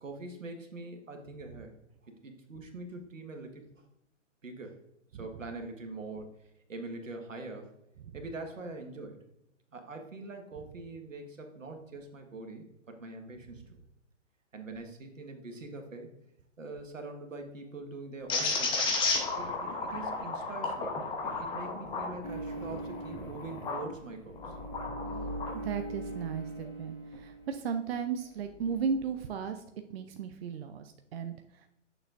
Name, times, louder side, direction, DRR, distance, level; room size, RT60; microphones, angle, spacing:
voice 1, 0.0-1.7 2.0-3.9 4.4-4.8 5.1-7.7 8.1-9.2 9.7-13.8 14.5-16.1 16.6-18.8 19.3-20.9 21.2-24.6, right 2 dB, 85° right, 4 dB, 1.6 m, -43 dB
sound 1, 18.3-23.9 24.4-25.6, left 3 dB, 15° left, 0.9 m, -33 dB
sound 2, 22.2-27.9 28.2-29.4, right 1 dB, 40° left, 2.4 m, -42 dB
voice 2, 25.6-29.6 29.9-31.7, right 6 dB, 50° right, 7 dB, 0.6 m, -35 dB
8.7 x 6.7 x 2.6 m, 0.84 s
figure-of-eight pair, 130°, 38 cm